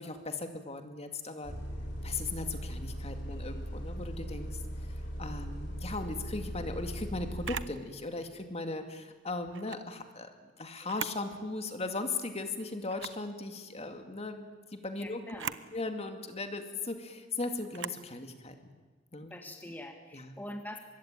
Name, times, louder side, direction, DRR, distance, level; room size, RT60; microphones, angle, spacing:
voice 1, 0.0-1.5 2.0-4.6 4.9-10.3 10.6-15.4 15.7-18.7 19.1-19.3 20.1-20.4, left 3 dB, 30° left, 7 dB, 2.3 m, -38 dB
Bus, 1.4-7.7, equal, 60° left, 4.6 m, -39 dB
Camera, 7.4-7.8 9.5-9.8 10.8-11.3 11.7-11.8 12.9-13.2 15.3-15.7 17.7-18.0, right 8 dB, 65° right, 0.9 m, -39 dB
voice 2, 15.0-15.6 19.3-20.8, left 1 dB, 10° left, 4 dB, 1.9 m, -44 dB
24.5 x 22.5 x 9.1 m, 1.4 s
head